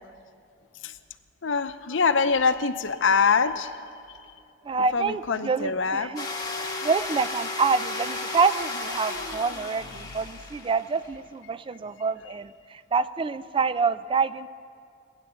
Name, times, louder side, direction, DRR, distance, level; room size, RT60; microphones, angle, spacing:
voice 1, 1.4-3.7 4.9-6.1 9.2-9.3 10.0-10.1, left 5 dB, 70° left, 10 dB, 0.7 m, -24 dB
voice 2, 4.6-6.3 6.6-14.5, right 5 dB, 25° right, 14 dB, 0.4 m, -27 dB
sound 1, 6.2-11.2, left 3 dB, 20° left, 1.5 m, -34 dB
20.0 x 9.8 x 7.0 m, 2.4 s
head